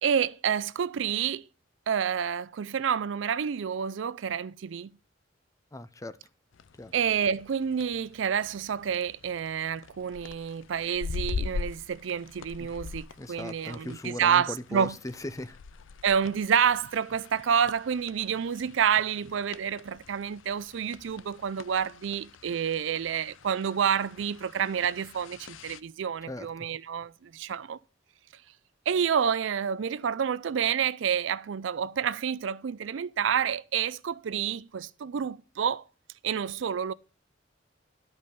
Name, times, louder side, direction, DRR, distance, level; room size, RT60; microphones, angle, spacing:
voice 1, 0.0-1.5 1.9-4.9 6.9-14.9 16.0-27.8 28.9-35.8 36.2-36.9, right 7 dB, 70° right, 0.4 m, -28 dB
voice 2, 5.7-6.1 6.8-6.9 13.2-15.6 26.3-26.5, left 1 dB, 15° left, 0.6 m, -38 dB
sound 1, 6.5-25.8, left 4 dB, 80° left, 0.5 m, -43 dB
11.5 x 5.3 x 5.4 m
head